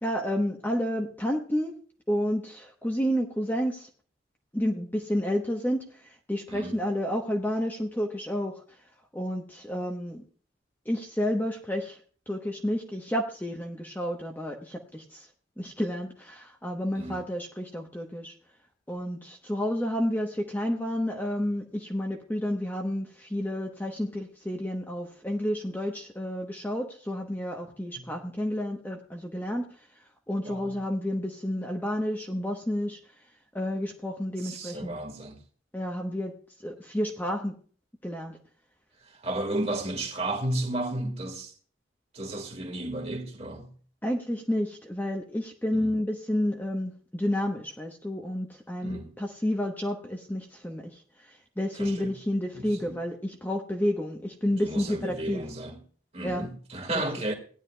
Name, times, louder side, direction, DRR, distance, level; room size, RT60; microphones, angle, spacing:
voice 1, 0.0-1.8 2.1-3.9 4.5-8.6 9.1-10.2 10.8-12.0 12.3-15.3 15.6-18.3 18.9-29.9 30.3-33.0 33.5-35.0 35.7-36.3 36.6-37.6 38.0-38.4 44.0-55.4 56.2-56.5 56.9-57.0, equal, 10° left, 0.9 m, -30 dB
voice 2, 6.5-6.8 17.0-17.2 28.0-28.1 30.4-30.7 34.4-35.4 39.0-41.5 42.1-43.7 45.7-45.9 48.8-49.1 51.8-52.1 52.5-53.0 54.6-55.8 56.1-57.3, right 1 dB, 30° right, 1.8 m, -33 dB
17.5 x 10.5 x 2.3 m
head